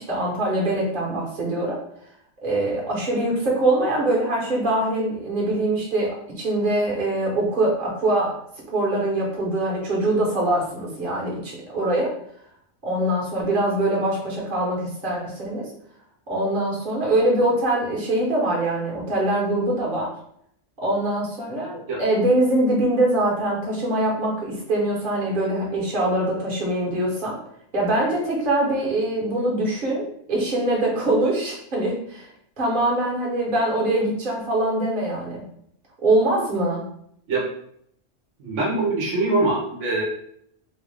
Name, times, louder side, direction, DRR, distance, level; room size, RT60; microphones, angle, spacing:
voice 1, 0.0-1.8 2.4-8.3 8.7-12.1 12.8-15.7 16.3-20.1 20.8-27.4 27.7-32.3 32.6-35.4 36.0-36.8, right 1 dB, 45° right, -4 dB, 1.3 m, -23 dB
voice 2, 38.4-40.0, right 2 dB, 80° right, -2 dB, 1.2 m, -23 dB
3.7 x 2.4 x 3.3 m, 0.69 s
omnidirectional pair, 1.2 m